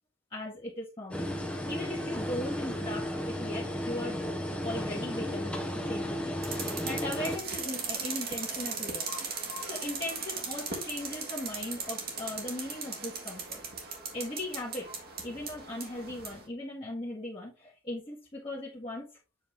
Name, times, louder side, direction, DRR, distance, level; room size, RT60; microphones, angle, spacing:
voice 1, 0.3-4.2 4.6-5.5 5.8-9.0 9.7-13.6 14.1-14.9 15.2-19.0, left 1 dB, 25° left, -6 dB, 1.4 m, -38 dB
sound 1, 1.1-7.4, equal, 5° left, 0.8 m, -34 dB
sound 2, 6.4-16.4, right 4 dB, 50° right, 1.6 m, -38 dB
7.4 x 3.8 x 3.4 m, 0.29 s
head